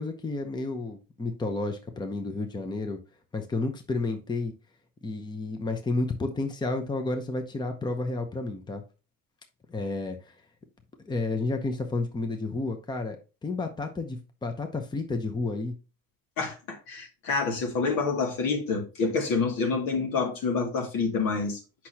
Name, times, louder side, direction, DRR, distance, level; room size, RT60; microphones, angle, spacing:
voice 1, 0.0-3.0 3.3-4.5 5.0-8.8 9.7-10.3 11.0-13.2 13.4-15.7, left 3 dB, 15° left, 0.8 m, -31 dB
voice 2, 16.4-21.6, left 4 dB, 75° left, 2.5 m, -27 dB
8.2 x 5.9 x 2.9 m
cardioid pair, 160°, 34 cm